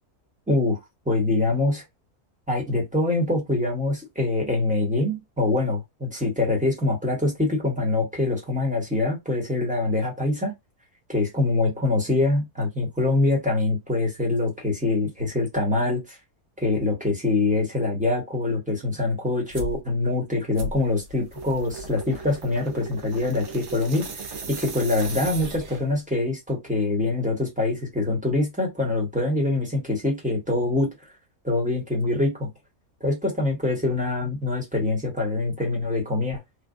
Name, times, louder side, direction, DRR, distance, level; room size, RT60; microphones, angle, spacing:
voice 1, 0.5-0.8 1.0-1.8 2.5-10.5 11.1-16.2 16.6-24.1 24.5-30.9 31.4-32.5 33.0-36.4, left 2 dB, 5° right, 1.3 m, -24 dB
sound 1, 19.5-19.8 20.5-26.0, right 2 dB, 55° right, 1.0 m, -37 dB
3.3 x 2.4 x 2.5 m
omnidirectional pair, 1.7 m